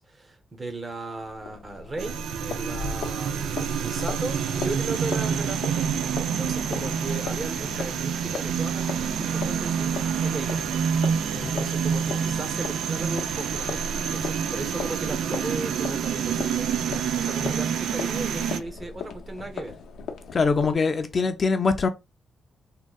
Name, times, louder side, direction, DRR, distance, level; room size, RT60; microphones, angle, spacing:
voice 1, 0.0-10.6 11.3-13.7 14.1-19.8, right 2 dB, 25° right, 0.6 m, -36 dB
sound 1, 1.2-20.8, left 4 dB, 85° left, 0.6 m, -38 dB
sound 2, 2.0-18.6, right 7 dB, 85° right, 0.3 m, -27 dB
voice 2, 20.3-21.9, left 4 dB, 35° left, 0.4 m, -23 dB
3.5 x 2.1 x 2.2 m
cardioid pair, 140°, 0 cm